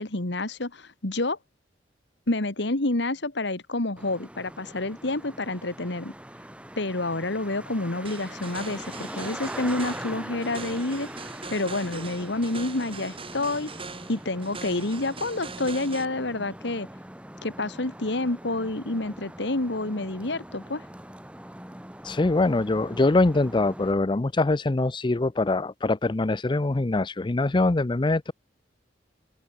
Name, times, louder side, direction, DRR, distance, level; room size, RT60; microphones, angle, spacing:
voice 1, 0.0-1.4 2.3-6.1 6.8-11.1 11.5-13.7 14.1-16.9 17.4-20.8, left 2 dB, 65° left, 1.9 m, -28 dB
Traffic noise roadway noise, 4.0-23.9, right 1 dB, 5° right, 6.5 m, -42 dB
sound 1, 8.0-16.1, right 4 dB, 30° right, 4.5 m, -41 dB
voice 2, 22.0-28.3, left 2 dB, 25° left, 0.5 m, -23 dB
head